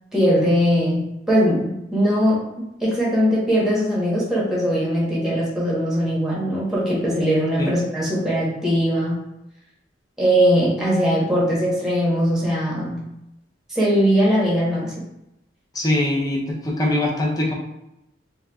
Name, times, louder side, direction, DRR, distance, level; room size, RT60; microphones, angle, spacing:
voice 1, 0.1-9.2 10.2-13.0 13.7-14.9, equal, 5° right, -7 dB, 0.9 m, -20 dB
voice 2, 15.8-17.5, left 1 dB, 20° left, -1 dB, 0.5 m, -22 dB
3.8 x 2.2 x 2.2 m, 0.86 s
head